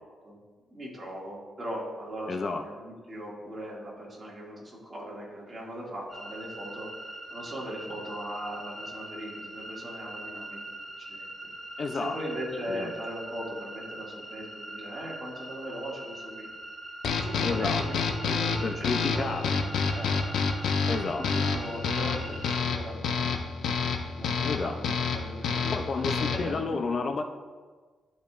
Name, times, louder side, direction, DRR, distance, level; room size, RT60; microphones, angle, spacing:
voice 1, 0.7-6.9 7.3-11.5 11.9-16.5 17.2-18.0 18.2-20.2 20.9-23.3 24.0-26.5, equal, 30° right, -4 dB, 2.0 m, -39 dB
voice 2, 2.3-2.6 11.8-12.2 12.7-12.9 17.4-17.8 18.6-19.5 20.9-21.2 24.4-24.7 25.7-27.2, left 4 dB, 45° left, 5 dB, 0.4 m, -31 dB
sound 1, 6.1-22.6, right 1 dB, ahead, 1.4 m, -42 dB
sound 2, 17.0-26.6, left 5 dB, 85° left, 0.7 m, -29 dB
12.0 x 5.0 x 2.4 m, 1.5 s
cardioid pair, 130°, 0 cm